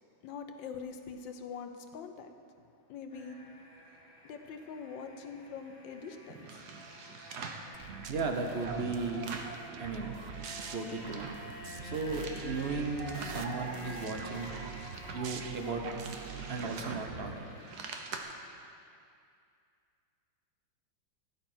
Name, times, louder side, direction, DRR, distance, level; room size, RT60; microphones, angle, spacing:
voice 1, 0.2-2.3 2.9-3.4 4.2-6.7, left 5 dB, 75° left, 6 dB, 1.5 m, -43 dB
sound 1, 3.1-17.8, left 1 dB, 20° left, 1.2 m, -50 dB
sound 2, 6.3-7.7 8.2-9.6 9.9-11.5 11.8-13.4 13.9-18.2, right 5 dB, 60° right, 1.5 m, -46 dB
sound 3, 7.7-17.3, right 6 dB, 90° right, 0.5 m, -43 dB
voice 2, 8.1-9.3 9.8-10.1 10.6-11.3 11.8-14.5 15.1-15.8 16.5-17.6, right 3 dB, 40° right, 4 dB, 1.0 m, -35 dB
16.5 x 11.5 x 4.4 m, 2.4 s
omnidirectional pair, 2.1 m